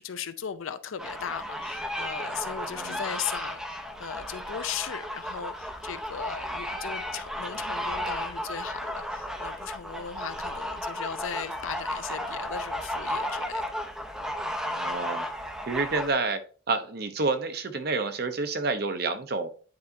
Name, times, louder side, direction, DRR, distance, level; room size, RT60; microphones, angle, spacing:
voice 1, 0.0-13.7, left 8 dB, 85° left, 0.5 m, -37 dB
sound 1, 1.0-16.1, equal, 5° right, 0.5 m, -34 dB
voice 2, 2.7-3.0 14.8-15.3 15.7-16.4 16.7-19.5, right 3 dB, 50° right, 0.7 m, -29 dB
9.5 x 4.1 x 2.6 m
head